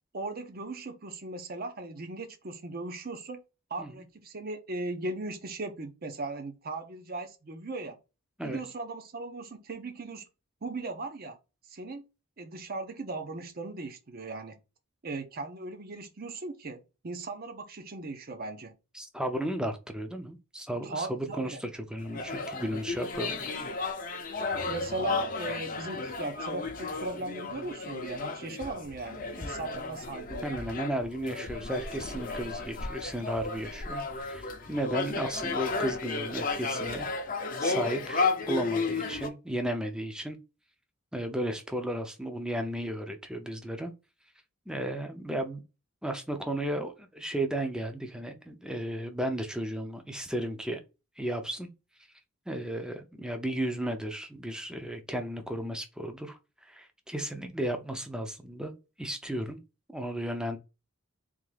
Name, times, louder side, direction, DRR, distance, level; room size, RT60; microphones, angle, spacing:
voice 1, 0.1-3.4 3.7-8.0 8.4-10.2 10.6-11.4 11.7-12.0 12.4-14.6 15.0-18.7 20.8-21.6 24.5-30.7, right 2 dB, 45° right, 0.7 m, -38 dB
voice 2, 18.9-23.5 30.4-37.1 37.3-40.4 41.1-43.9 44.7-45.6 46.0-50.8 51.2-51.7 52.5-58.7 59.0-59.6 59.9-60.6, right 1 dB, 5° right, 0.5 m, -34 dB
sound 1, 22.0-39.3, left 3 dB, 40° left, 0.6 m, -33 dB
3.6 x 3.1 x 3.2 m
head